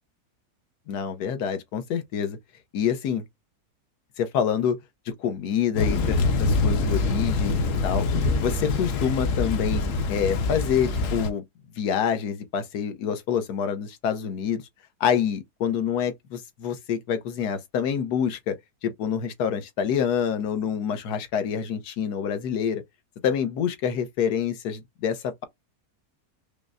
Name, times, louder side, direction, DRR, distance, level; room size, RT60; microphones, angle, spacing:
voice 1, 0.9-2.4 2.7-3.2 4.2-4.8 5.2-8.1 8.4-9.8 10.1-11.4 11.8-14.7 15.0-18.6 18.8-22.8 23.2-25.4, left 8 dB, 90° left, 1.3 m, -27 dB
Thunder / Rain, 5.8-11.3, left 3 dB, 60° left, 1.0 m, -25 dB
5.1 x 2.1 x 2.5 m
omnidirectional pair, 1.7 m